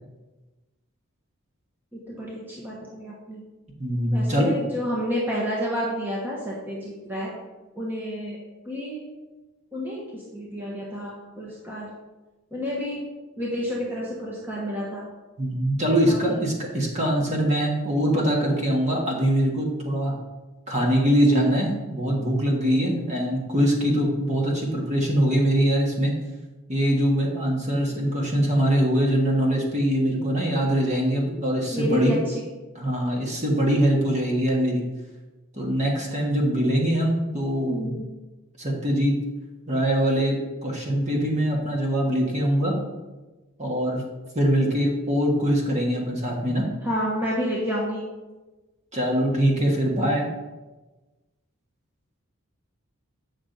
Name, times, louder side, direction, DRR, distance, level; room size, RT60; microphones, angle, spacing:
voice 1, 1.9-3.4 4.1-7.3 7.7-8.4 8.6-9.0 9.7-11.9 12.5-13.0 13.4-15.1 16.1-16.4 31.7-32.4 37.7-38.1 46.8-48.1, equal, 10° right, -5 dB, 1.1 m, -30 dB
voice 2, 3.8-4.5 15.4-20.1 20.7-26.1 26.7-32.1 32.7-34.8 35.5-37.9 38.6-39.2 39.7-42.8 43.6-44.0 44.3-46.7 48.9-50.2, equal, 30° right, -1 dB, 1.5 m, -23 dB
8.7 x 6.1 x 3.9 m, 1.2 s
head